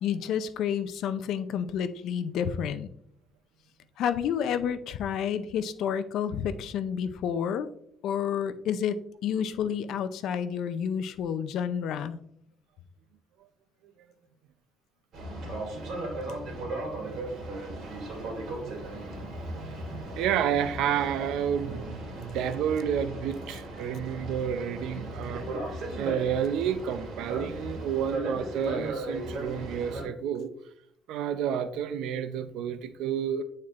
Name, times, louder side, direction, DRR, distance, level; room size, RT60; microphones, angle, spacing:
voice 1, 0.0-2.9 4.0-7.7 8.0-12.2, left 8 dB, 75° left, 0.5 m, -30 dB
Boat Water vehicle, 15.1-30.0, right 2 dB, 60° right, 2.4 m, -36 dB
voice 2, 16.5-17.4 18.4-18.7 19.0-19.1 19.4-30.5 31.1-33.4, right 8 dB, 90° right, 0.5 m, -31 dB
9.4 x 4.3 x 2.4 m
cardioid pair, 130°, 0 cm